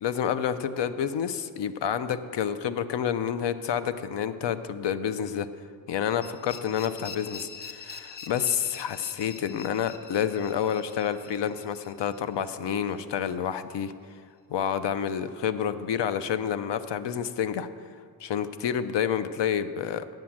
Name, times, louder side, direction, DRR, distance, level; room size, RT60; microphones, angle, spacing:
voice 1, 0.0-5.5 5.9-13.9 14.5-17.7 18.2-20.0, left 8 dB, 75° left, 12 dB, 0.7 m, -29 dB
sound 1, 6.2-13.0, left 5 dB, 25° left, 0.6 m, -44 dB
9.1 x 7.6 x 7.2 m, 2.3 s
wide cardioid pair, 165°, 42 cm